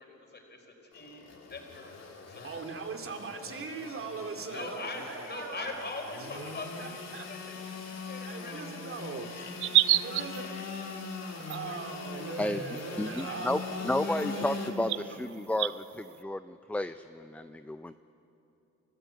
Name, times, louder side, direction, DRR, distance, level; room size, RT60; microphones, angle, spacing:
voice 1, 0.0-1.9 2.3-2.5 4.5-8.8 9.4-12.6 13.3-15.3, left 3 dB, 35° left, 2 dB, 4.5 m, -44 dB
Engine / Sawing, 0.9-14.7, left 4 dB, 55° left, 2.8 m, -41 dB
voice 2, 2.4-5.8 6.3-6.5 6.8-7.3 8.0-9.3 10.0-10.5 11.5-15.2 15.7-15.8 16.1-16.2, right 4 dB, 45° right, 4 dB, 2.5 m, -41 dB
sound 1, 9.6-10.4 11.5-11.6 12.8-12.9 13.1-13.2 14.2-14.3 14.9-15.0 15.6-15.7, right 15 dB, 75° right, 0.5 m, -25 dB
voice 3, 13.0-17.9, left 1 dB, 5° left, 10 dB, 0.5 m, -32 dB
29.0 x 14.0 x 8.3 m, 2.9 s
cardioid pair, 90°, 30 cm